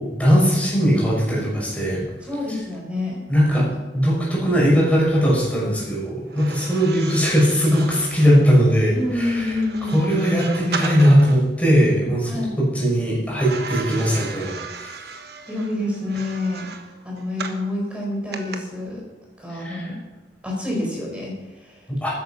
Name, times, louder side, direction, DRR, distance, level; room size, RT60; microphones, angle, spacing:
voice 1, 0.0-2.0 3.3-9.6 9.9-12.3 12.6-14.9 19.6-19.9 21.9-22.1, equal, 10° left, -5 dB, 5.7 m, -19 dB
voice 2, 2.3-3.2 8.9-10.0 12.3-12.5 15.5-16.7 17.0-19.0 19.4-20.0 20.4-21.8, left 1 dB, 5° right, -3 dB, 5.0 m, -27 dB
sound 1, 6.3-11.4 13.4-17.7 18.3-18.6, right 5 dB, 65° right, 1.3 m, -36 dB
13.5 x 10.5 x 5.9 m, 1.1 s
head